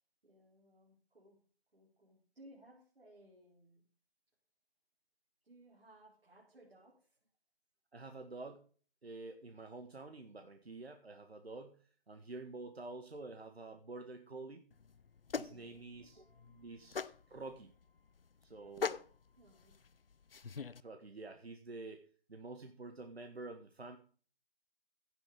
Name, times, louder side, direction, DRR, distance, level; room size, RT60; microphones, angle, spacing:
voice 1, 0.2-1.4 1.7-3.8 5.4-7.2 15.3-15.8 16.2-16.7 18.5-18.8 19.4-19.8, right 1 dB, 70° right, -4 dB, 5.0 m, -62 dB
voice 2, 7.9-8.7 9.0-14.7 15.3-16.2 16.6-17.7 18.4-19.0 20.8-24.0, right 3 dB, 90° right, 6 dB, 1.7 m, -49 dB
sound 1, 14.7-20.8, left 5 dB, 65° left, 0.7 m, -43 dB
16.0 x 6.5 x 5.2 m, 0.41 s
figure-of-eight pair, 175°, 30 cm